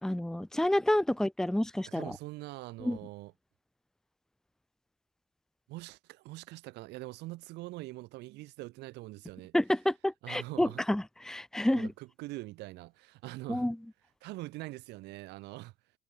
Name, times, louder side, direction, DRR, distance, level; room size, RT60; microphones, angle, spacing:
voice 1, 0.0-2.2 2.8-3.0 9.5-11.9 13.5-13.8, left 1 dB, 5° left, 1.0 m, -29 dB
voice 2, 1.8-3.3 5.7-9.5 10.2-10.8 11.7-13.7 14.2-15.7, right 20 dB, 90° right, 5.4 m, -43 dB
cardioid pair, 110°, 17 cm